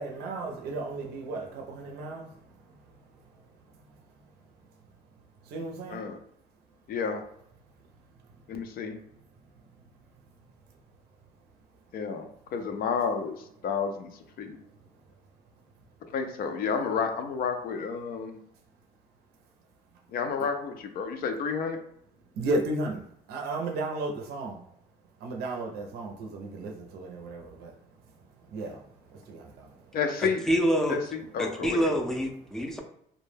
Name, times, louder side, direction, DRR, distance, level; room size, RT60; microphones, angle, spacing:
voice 1, 0.0-4.0 5.4-6.1 9.5-9.6 20.4-20.5 22.3-23.0 23.3-24.6 25.2-30.0 31.4-31.6, right 2 dB, 70° right, 2 dB, 0.5 m, -35 dB
voice 2, 6.9-7.2 8.5-9.0 11.9-13.4 13.6-14.1 14.4-14.6 16.1-18.4 20.1-21.8 29.9-30.4 30.9-31.9, left 6 dB, 60° left, 6 dB, 0.4 m, -30 dB
voice 3, 30.2-31.0 31.4-32.8, equal, 5° left, 2 dB, 0.4 m, -27 dB
2.2 x 2.1 x 3.2 m, 0.71 s
cardioid pair, 110°, 17 cm